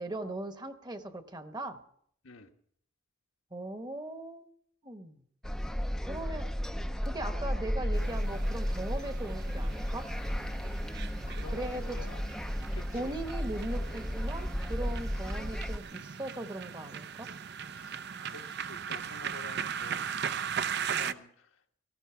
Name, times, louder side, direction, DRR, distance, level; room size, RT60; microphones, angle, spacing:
voice 1, 0.0-1.8 3.5-4.5 4.8-5.2 6.0-6.5 7.0-10.1 11.5-12.1 12.9-17.3, right 1 dB, 20° right, 8 dB, 1.1 m, -39 dB
sound 1, 5.4-15.8, equal, 5° left, 0.5 m, -34 dB
sound 2, 7.9-21.1, right 7 dB, 55° right, 0.6 m, -39 dB
voice 2, 11.3-12.2 12.7-13.2 17.7-18.0 18.2-20.1 20.3-21.5, left 3 dB, 85° left, 4 dB, 1.4 m, -50 dB
18.5 x 14.5 x 4.6 m, 0.65 s
head